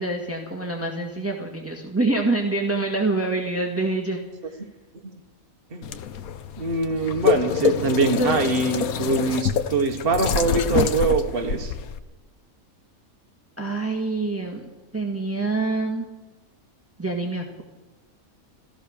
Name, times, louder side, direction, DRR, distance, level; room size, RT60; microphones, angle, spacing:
voice 1, 0.0-4.2 8.2-8.5 13.6-14.6 14.9-16.0 17.0-17.6, right 2 dB, 10° right, 1 dB, 1.8 m, -26 dB
sound 1, 5.8-12.0, left 7 dB, 85° left, 1.3 m, -26 dB
voice 2, 6.6-11.7, right 3 dB, 45° right, 5 dB, 1.5 m, -23 dB
15.5 x 14.0 x 6.5 m, 1.2 s
omnidirectional pair, 1.5 m